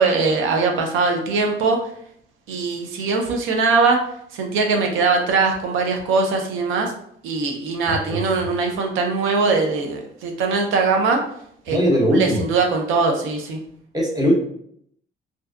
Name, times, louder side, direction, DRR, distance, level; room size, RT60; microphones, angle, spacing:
voice 1, 0.0-1.8 2.5-4.0 4.3-6.9 7.2-11.2 11.7-11.8 12.1-13.6, right 4 dB, 90° right, 3 dB, 0.5 m, -21 dB
voice 2, 7.9-8.2 11.7-12.4 13.9-14.3, equal, 20° right, -3 dB, 0.9 m, -20 dB
2.6 x 2.1 x 2.3 m, 0.68 s
cardioid pair, 90°, 20 cm